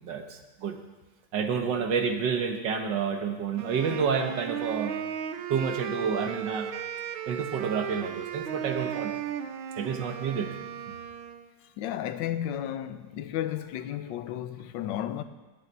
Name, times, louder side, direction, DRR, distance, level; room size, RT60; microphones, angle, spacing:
voice 1, 0.0-0.8 1.3-4.9 5.5-6.7 7.3-9.1 9.8-10.5, right 6 dB, 70° right, 1.7 m, -29 dB
Wind instrument woodwind instrument, 3.6-11.5, right 9 dB, 85° right, 1.6 m, -35 dB
voice 2, 11.8-15.2, left 11 dB, 75° left, 1.3 m, -33 dB
9.1 x 8.5 x 9.2 m
omnidirectional pair, 2.1 m